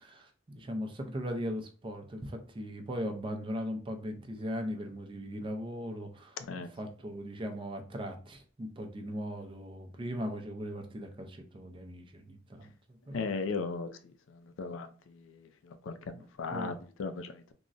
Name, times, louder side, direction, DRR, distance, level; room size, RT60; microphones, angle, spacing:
voice 1, 0.0-13.2 16.1-16.2 16.5-16.8, equal, 25° right, 0.5 m, -39 dB
voice 2, 13.1-13.9 14.6-14.9 15.9-16.0 16.4-17.3, left 4 dB, 75° left, 0.4 m, -35 dB
3.7 x 2.0 x 2.4 m
head